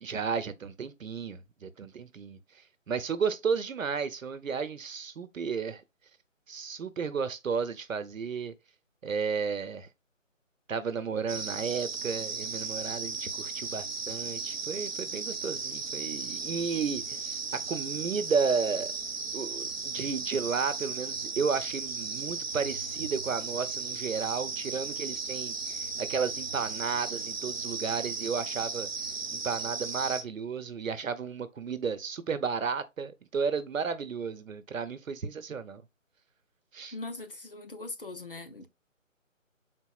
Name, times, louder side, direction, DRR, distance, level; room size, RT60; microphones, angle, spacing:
voice 1, 0.0-2.4 2.9-5.8 6.5-8.5 9.0-9.9 10.7-18.9 19.3-28.9 29.3-35.8 36.7-36.9, right 5 dB, 80° right, 0.8 m, -33 dB
sound 1, 11.3-30.2, right 4 dB, 50° right, 0.8 m, -36 dB
voice 2, 36.9-38.7, left 2 dB, 45° left, 0.6 m, -41 dB
4.8 x 4.1 x 2.3 m
hypercardioid pair, 175°, 39 cm